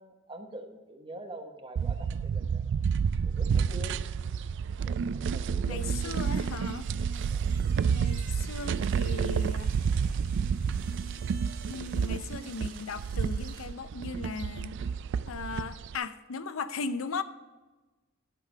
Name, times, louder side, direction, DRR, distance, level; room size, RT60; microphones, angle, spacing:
voice 1, 0.0-2.7 3.2-4.0 4.8-6.5 7.3-7.5, right 1 dB, 25° right, 5 dB, 1.0 m, -45 dB
sound 1, 1.8-16.0, right 6 dB, 60° right, 0.3 m, -30 dB
voice 2, 5.7-6.9 7.8-9.8 11.7-14.8 15.2-17.2, left 4 dB, 85° left, 12 dB, 0.6 m, -37 dB
sound 2, 5.8-13.8, right 6 dB, 45° right, 1.3 m, -53 dB
12.0 x 5.9 x 5.5 m, 1.2 s
head